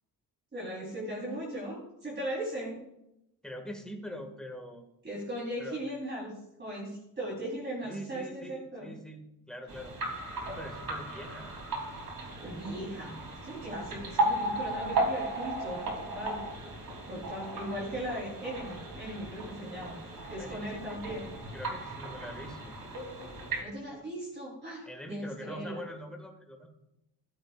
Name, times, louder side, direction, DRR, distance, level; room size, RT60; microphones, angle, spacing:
voice 1, 0.5-2.8 5.0-6.3 6.6-8.9 12.4-16.4 17.1-20.0 20.3-21.3 23.6-25.8, right 1 dB, 30° right, -5 dB, 3.7 m, -38 dB
voice 2, 3.4-4.8 5.6-5.8 7.8-9.9 10.4-11.5 20.4-21.0 21.5-22.7 24.9-26.7, equal, ahead, 2 dB, 1.7 m, -43 dB
sound 1, 9.7-23.6, right 2 dB, 60° right, 3.2 m, -36 dB
15.0 x 13.0 x 2.4 m, 0.84 s
wide cardioid pair, 160°, 38 cm